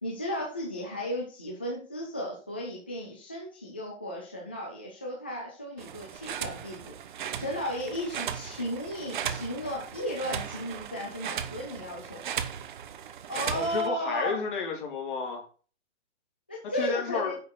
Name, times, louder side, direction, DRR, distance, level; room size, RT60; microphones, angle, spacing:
voice 1, 0.0-6.9 7.4-12.2 13.3-14.4 16.5-17.4, equal, 10° left, -2 dB, 0.4 m, -34 dB
sound 1, 5.8-13.9, right 8 dB, 40° right, 1.0 m, -37 dB
voice 2, 13.5-15.5 16.7-17.4, left 5 dB, 45° left, 0 dB, 4.1 m, -32 dB
9.5 x 6.6 x 4.5 m, 0.38 s
hypercardioid pair, 170°, 36 cm